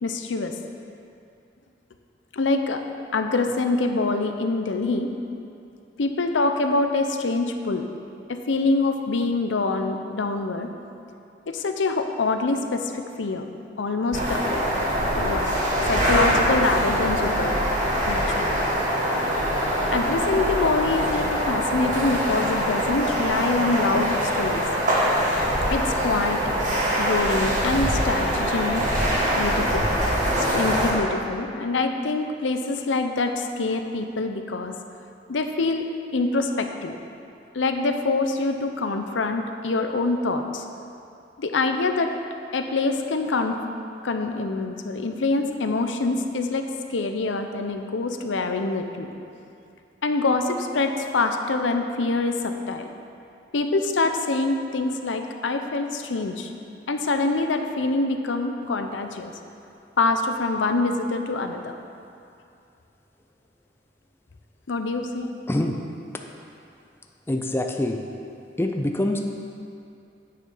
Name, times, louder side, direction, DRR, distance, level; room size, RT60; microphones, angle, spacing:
voice 1, 0.0-0.5 2.3-2.8 3.1-5.1 6.0-7.9 8.3-10.7 11.5-13.5 13.8-14.4 15.2-15.5 15.9-17.6 18.0-18.6 19.9-24.6 25.7-26.4 27.0-28.9 29.4-29.9 30.5-34.7 35.3-37.0 37.5-40.6 41.4-42.1 42.5-43.6 44.0-49.1 50.0-52.9 53.5-56.5 56.9-59.3 60.0-61.8 64.7-65.3, left 3 dB, 90° left, 6 dB, 0.6 m, -25 dB
sound 1, 14.1-30.9, equal, 45° right, 1.7 m, -23 dB
voice 2, 67.3-68.0 68.6-69.2, left 1 dB, 15° left, 3 dB, 0.5 m, -24 dB
9.3 x 6.5 x 5.5 m, 2.6 s
head